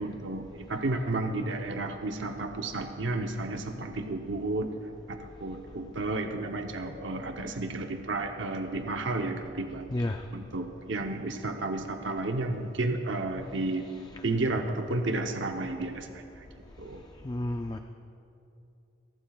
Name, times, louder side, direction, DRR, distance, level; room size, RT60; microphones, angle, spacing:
voice 1, 0.0-4.8 5.1-13.9 14.2-16.4 16.8-17.0, right 2 dB, 85° right, 4 dB, 0.8 m, -32 dB
voice 2, 9.9-10.2 17.2-17.8, left 1 dB, 20° left, 5 dB, 0.4 m, -31 dB
28.5 x 11.5 x 2.4 m, 2.7 s
head